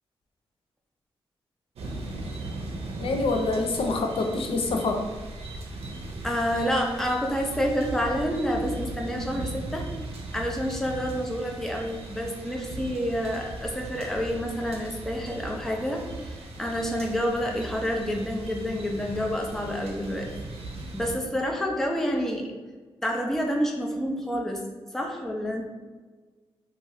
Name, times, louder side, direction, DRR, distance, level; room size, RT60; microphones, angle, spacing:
sound 1, 1.7-21.1, right 2 dB, 80° right, 0.5 m, -38 dB
voice 1, 3.0-5.0, left 3 dB, 60° left, 3 dB, 0.4 m, -26 dB
voice 2, 6.2-9.9 10.3-20.3 20.9-22.5 23.0-24.6 24.9-25.6, equal, 5° left, 1 dB, 0.5 m, -28 dB
2.6 x 2.4 x 3.0 m, 1.4 s
cardioid pair, 55°, 10 cm